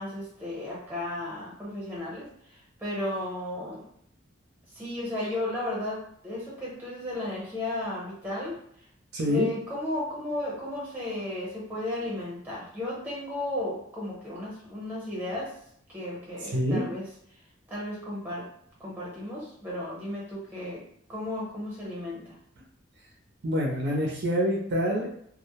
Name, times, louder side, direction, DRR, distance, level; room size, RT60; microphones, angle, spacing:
voice 1, 0.0-2.3 2.8-3.9 4.7-8.6 9.2-15.5 15.9-17.1 17.7-18.5 18.8-22.3, left 1 dB, 10° right, -5 dB, 0.8 m, -34 dB
voice 2, 9.1-9.5 16.4-16.8 23.4-25.1, equal, 55° right, -2 dB, 0.5 m, -26 dB
2.1 x 2.1 x 2.9 m, 0.70 s
head